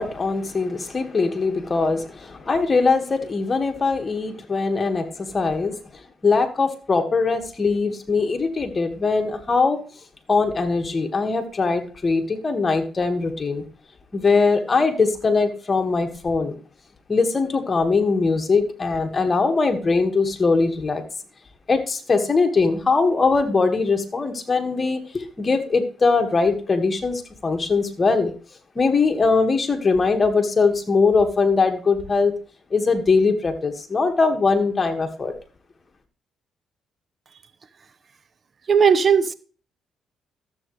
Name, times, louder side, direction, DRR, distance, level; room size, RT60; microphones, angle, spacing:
voice 1, 0.0-5.8 6.2-9.8 10.3-13.6 14.1-16.6 17.1-21.0 21.7-28.3 28.8-32.3 32.7-35.3, left 4 dB, 35° left, 1.8 m, -21 dB
voice 2, 38.7-39.3, right 6 dB, 45° right, 0.8 m, -16 dB
13.0 x 8.0 x 3.3 m
cardioid pair, 75°, 0 cm